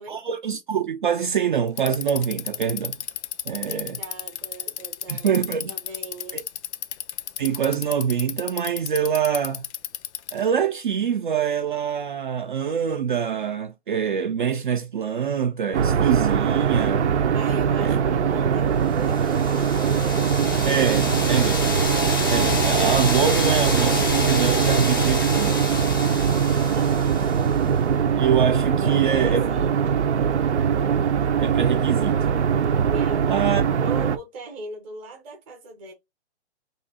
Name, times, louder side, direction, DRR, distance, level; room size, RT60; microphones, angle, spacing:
voice 1, 0.1-3.0 3.5-4.0 5.1-5.7 6.3-6.4 7.4-9.6 10.3-17.1 17.8-18.0 20.6-21.6 22.3-25.7 28.2-29.5 31.4-32.2 33.3-33.7, right 8 dB, 50° right, 0.5 m, -25 dB
Bicycle, 1.7-10.5, left 10 dB, 80° left, 0.5 m, -32 dB
voice 2, 3.6-5.3 5.6-6.5 17.3-20.1 26.3-27.3 28.8-29.7 32.9-35.9, right 2 dB, 10° right, 0.7 m, -38 dB
sound 1, 15.7-34.2, right 7 dB, 90° right, 0.7 m, -22 dB
sound 2, 19.0-27.7, left 2 dB, 20° left, 0.4 m, -27 dB
3.1 x 2.6 x 4.0 m
hypercardioid pair, 165°, 34 cm